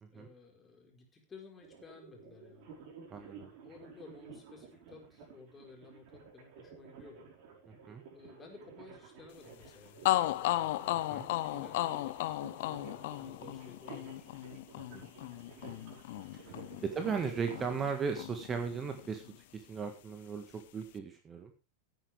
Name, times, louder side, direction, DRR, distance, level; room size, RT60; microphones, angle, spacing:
voice 1, 0.1-2.7 3.6-7.3 8.1-10.8 11.6-12.2 12.6-14.3, left 4 dB, 20° left, 2 dB, 4.8 m, -55 dB
sound 1, 1.6-17.8, right 5 dB, 45° right, 5.2 m, -53 dB
voice 2, 3.1-3.5 7.7-8.0 11.1-11.3 14.9-15.1 16.4-16.5 16.8-19.2 19.5-21.5, right 6 dB, 20° right, 6 dB, 1.8 m, -37 dB
sound 2, 9.6-9.7 10.0-17.9 18.2-19.3, left 15 dB, 50° left, 0.8 m, -35 dB
17.0 x 9.6 x 3.5 m, 0.30 s
figure-of-eight pair, 90°, 0 cm